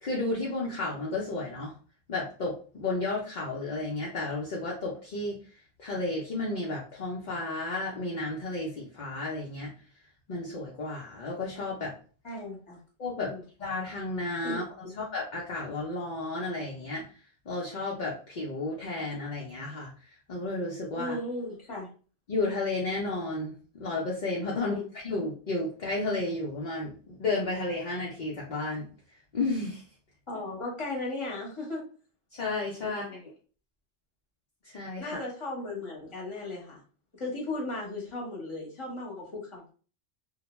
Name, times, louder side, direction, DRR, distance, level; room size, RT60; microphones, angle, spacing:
voice 1, 0.0-1.7 2.1-5.4 5.8-9.7 10.3-12.0 13.0-14.6 15.0-17.0 17.5-21.2 22.3-28.9 29.3-29.8 32.3-33.1 34.6-35.2, left 2 dB, 55° left, -3 dB, 0.5 m, -32 dB
voice 2, 12.2-12.8 13.2-13.4 14.4-14.6 21.0-21.9 24.5-24.8 30.3-31.9 32.8-33.2 35.0-36.8 37.2-39.7, left 2 dB, 30° left, -3 dB, 0.9 m, -36 dB
2.2 x 2.1 x 2.9 m, 0.39 s
omnidirectional pair, 1.2 m